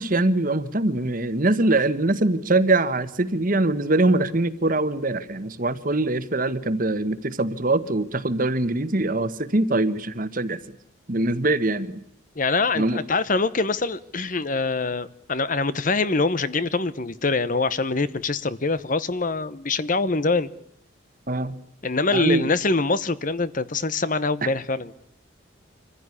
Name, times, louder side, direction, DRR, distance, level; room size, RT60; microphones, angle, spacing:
voice 1, 0.0-10.6 11.1-12.0 12.7-13.0 21.3-21.6 22.1-22.5, right 2 dB, 45° right, 13 dB, 1.3 m, -23 dB
voice 2, 12.4-20.5 21.8-24.9, left 3 dB, 40° left, 16 dB, 1.0 m, -24 dB
26.0 x 15.5 x 9.9 m, 0.76 s
head